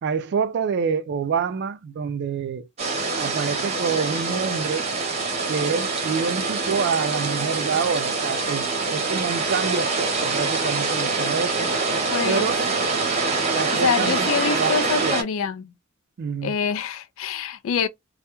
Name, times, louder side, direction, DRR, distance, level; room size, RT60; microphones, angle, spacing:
voice 1, 0.0-2.7 3.2-4.9 5.5-11.7 12.2-12.7 13.5-14.3 14.5-14.8 15.0-15.2 16.2-16.6, right 6 dB, 55° right, 0.3 m, -27 dB
sound 1, 2.8-15.2, right 3 dB, 30° right, 0.7 m, -25 dB
voice 2, 12.1-12.5 13.7-15.7 16.4-17.9, left 6 dB, 65° left, 0.3 m, -25 dB
2.2 x 2.1 x 2.9 m
head